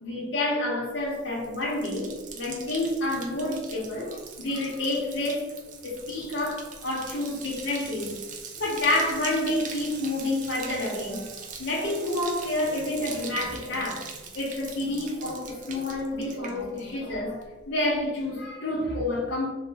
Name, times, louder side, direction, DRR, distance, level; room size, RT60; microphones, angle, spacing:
voice 1, 0.0-2.1 2.3-5.5 5.8-8.2 8.6-14.1 14.3-19.5, left 1 dB, 80° left, 0.8 m, -29 dB
Bathtub (filling or washing), 1.0-17.1 17.4-17.9, right 5 dB, 40° right, 0.4 m, -42 dB
3.1 x 2.1 x 3.2 m
head